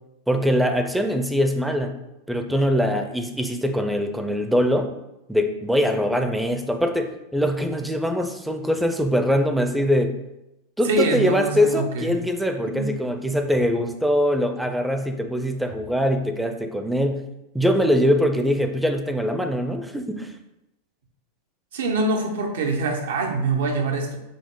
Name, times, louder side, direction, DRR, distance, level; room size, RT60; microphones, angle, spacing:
voice 1, 0.3-2.0 2.3-4.9 5.3-10.2 10.8-17.2 17.5-20.3, equal, 5° right, 6 dB, 0.4 m, -22 dB
voice 2, 10.8-12.2 12.7-12.9 21.7-24.2, right 2 dB, 80° right, 3 dB, 0.7 m, -24 dB
5.0 x 2.0 x 3.6 m, 0.91 s
hypercardioid pair, 115°, 0 cm